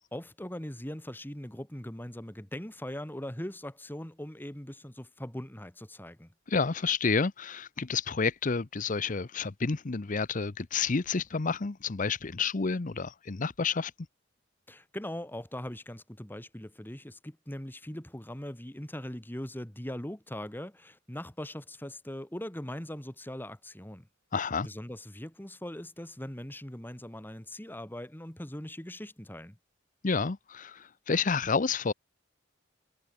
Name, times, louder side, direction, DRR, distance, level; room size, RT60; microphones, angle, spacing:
voice 1, 0.1-6.3 14.7-24.1 24.6-29.6, left 1 dB, 10° left, 1.8 m, -40 dB
voice 2, 6.5-13.9 24.3-24.7 30.0-31.9, left 5 dB, 40° left, 0.7 m, -30 dB
head